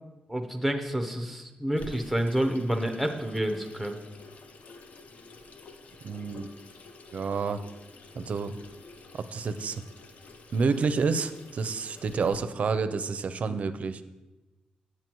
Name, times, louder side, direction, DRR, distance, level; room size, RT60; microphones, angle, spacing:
voice 1, 0.3-4.0, right 1 dB, ahead, 4 dB, 0.8 m, -29 dB
Water tap faucet / Sink (filling or washing), 1.8-12.4, left 3 dB, 55° left, 0.6 m, -49 dB
voice 2, 6.0-6.5 7.1-7.6 8.2-8.5 9.1-9.8 10.5-14.0, right 5 dB, 55° right, 11 dB, 0.5 m, -29 dB
9.1 x 7.8 x 3.0 m, 1.1 s
wide cardioid pair, 110°, 3 cm